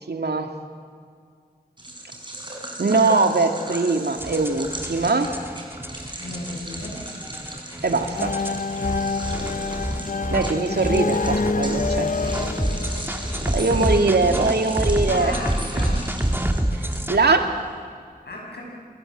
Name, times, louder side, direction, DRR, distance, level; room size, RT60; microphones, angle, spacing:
voice 1, 0.1-0.5 2.8-5.3 7.8-8.3 10.3-12.1 13.5-15.3 17.1-17.5, right 3 dB, 80° right, 5 dB, 2.4 m, -21 dB
sound 1, 1.8-17.4, right 1 dB, 30° right, 6.3 m, -38 dB
sound 2, 4.2-17.2, right 1 dB, 15° right, 2.0 m, -28 dB
voice 2, 6.2-7.1 13.6-13.9 15.1-16.3 18.3-18.6, left 1 dB, 85° left, -1 dB, 7.8 m, -34 dB
sound 3, 8.2-13.9, left 4 dB, 55° left, 0.7 m, -27 dB
28.0 x 21.0 x 7.6 m, 2.1 s
wide cardioid pair, 50°, 17 cm